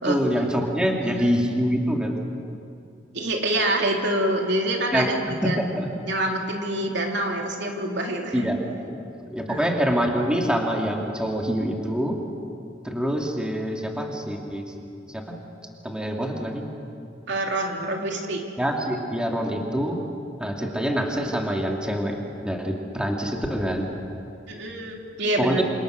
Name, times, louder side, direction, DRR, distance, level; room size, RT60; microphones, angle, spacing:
voice 1, 0.0-2.2 4.9-5.1 5.4-5.9 8.3-8.6 8.9-9.0 9.3-12.2 12.8-14.6 15.1-15.4 15.8-16.6 18.6-20.0 20.4-22.2 22.4-23.9 25.4-25.5, equal, 5° right, 0 dB, 2.4 m, -25 dB
voice 2, 0.9-1.3 3.1-5.1 5.4-5.7 6.0-8.5 9.5-9.6 17.3-18.5 24.5-25.6, right 1 dB, 65° right, 1 dB, 3.4 m, -26 dB
28.0 x 27.0 x 6.6 m, 2.6 s
head